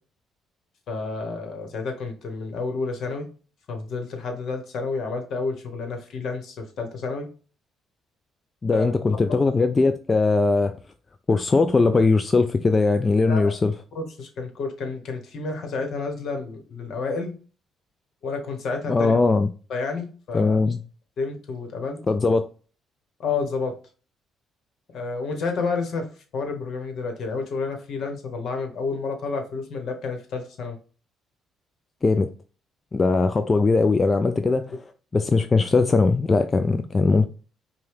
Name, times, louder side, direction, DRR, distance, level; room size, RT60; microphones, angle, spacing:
voice 1, 0.9-3.2 3.7-7.3 8.7-8.9 9.3-9.4 13.3-13.5 13.9-17.3 18.2-19.1 19.7-20.6 21.2-22.0 23.2-23.7 24.9-26.0 26.3-30.8, left 4 dB, 65° left, 1.1 m, -30 dB
voice 2, 8.6-10.7 11.3-13.7 18.9-19.5 20.3-20.8 22.1-22.5 32.0-32.3 32.9-34.8 35.1-37.3, left 3 dB, 30° left, 0.4 m, -20 dB
5.2 x 2.2 x 3.4 m
hypercardioid pair, 60°, 0 cm